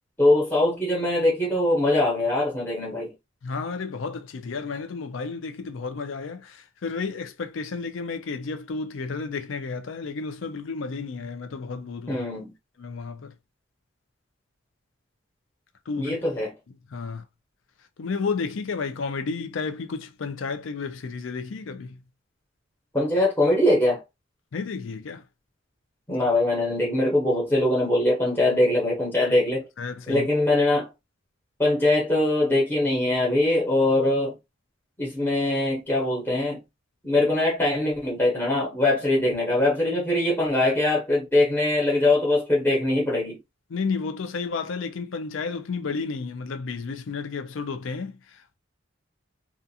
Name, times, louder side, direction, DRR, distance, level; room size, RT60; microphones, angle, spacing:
voice 1, 0.2-3.1 12.1-12.5 16.0-16.5 22.9-24.0 26.1-29.6 30.1-30.9 31.6-34.3 35.0-36.6 37.0-43.4, left 1 dB, 10° left, 0.9 m, -22 dB
voice 2, 3.4-12.2 12.8-13.3 15.9-16.2 16.9-17.2 18.0-22.0 24.5-25.2 29.2-29.4 29.8-30.3 43.7-48.5, left 4 dB, 70° left, 0.4 m, -32 dB
2.4 x 2.4 x 2.7 m
head